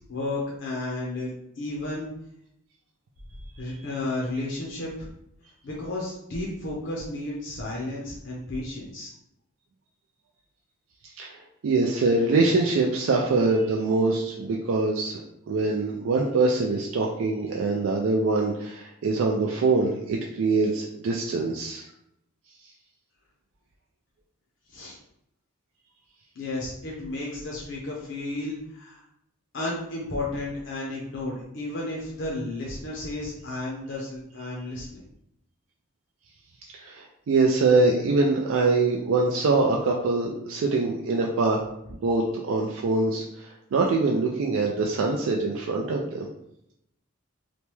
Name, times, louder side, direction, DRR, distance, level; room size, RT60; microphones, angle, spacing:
voice 1, 0.1-1.3 1.6-2.1 3.6-5.1 5.6-9.1 24.7-25.0 26.4-29.0 29.5-35.0, left 2 dB, 55° left, -4 dB, 0.5 m, -33 dB
voice 2, 11.2-21.8 36.8-41.6 42.0-46.3, right 3 dB, 70° right, 0 dB, 0.3 m, -24 dB
3.0 x 2.2 x 3.1 m, 0.78 s
head